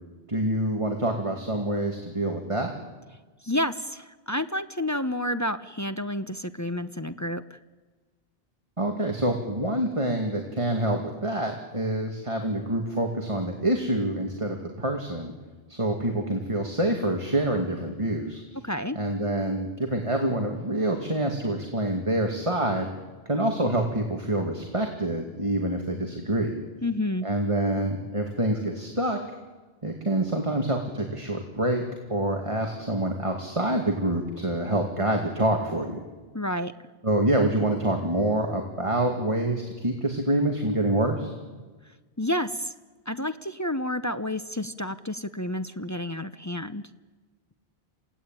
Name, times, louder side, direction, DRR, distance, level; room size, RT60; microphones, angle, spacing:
voice 1, 0.3-2.7 8.8-15.3 15.7-18.4 19.0-22.9 23.3-26.6 27.2-29.2 29.8-31.8 32.1-36.0 37.0-41.3, right 1 dB, 30° right, 2 dB, 2.4 m, -26 dB
voice 2, 3.4-7.4 18.6-19.0 26.8-27.3 36.3-36.7 42.2-42.7 43.1-46.8, left 1 dB, 20° left, 10 dB, 0.7 m, -30 dB
28.5 x 17.0 x 9.1 m, 1.3 s
omnidirectional pair, 1.1 m